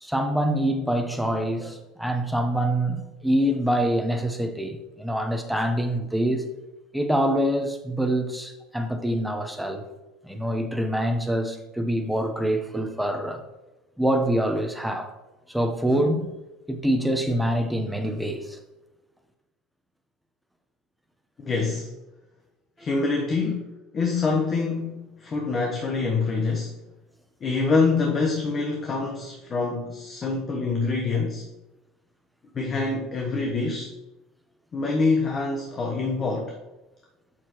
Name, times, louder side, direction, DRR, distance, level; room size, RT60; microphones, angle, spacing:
voice 1, 0.0-6.5 6.9-9.8 10.2-13.4 14.0-15.1 15.5-16.3 16.7-18.6 30.2-30.3, right 1 dB, ahead, 0.9 m, -25 dB
voice 2, 21.4-21.9 22.8-23.7 23.9-26.8 27.4-31.5 32.5-33.9 34.7-36.6, left 4 dB, 35° left, 1.0 m, -25 dB
7.5 x 6.5 x 3.0 m
supercardioid pair, 90°, 0 cm